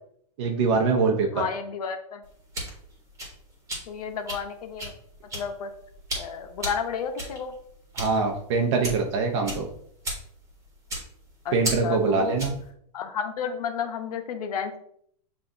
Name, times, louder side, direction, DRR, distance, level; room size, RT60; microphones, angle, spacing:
voice 1, 0.4-1.4 8.0-9.7 11.5-12.6, right 4 dB, 50° right, 2 dB, 0.7 m, -23 dB
voice 2, 1.3-2.2 3.9-4.9 5.3-5.7 6.2-7.5 11.4-11.6 11.8-12.5 12.9-14.8, left 7 dB, 75° left, 7 dB, 0.7 m, -31 dB
sound 1, 2.2-12.7, right 1 dB, 15° right, 1.3 m, -36 dB
7.1 x 2.6 x 2.6 m, 0.66 s
hypercardioid pair, 140°, 20 cm